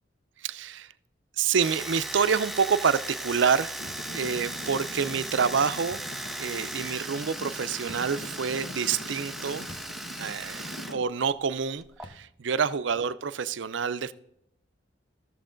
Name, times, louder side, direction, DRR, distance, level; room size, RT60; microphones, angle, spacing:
voice 1, 0.4-0.9 1.4-3.7 4.1-6.0 6.4-9.7 10.2-14.1, right 6 dB, 65° right, 14 dB, 0.5 m, -27 dB
Domestic sounds home sounds, 1.6-11.0 11.2-12.1, right 1 dB, ahead, 0.5 m, -37 dB
Traffic noise roadway noise / Engine, 3.8-11.0, left 1 dB, 60° left, 1.0 m, -43 dB
sound 1, 3.9-4.2 5.9-6.3 7.9-8.2 9.7-10.0 10.3-10.4 12.0-12.4, left 1 dB, 25° left, 0.9 m, -50 dB
14.5 x 7.0 x 3.8 m, 0.78 s
head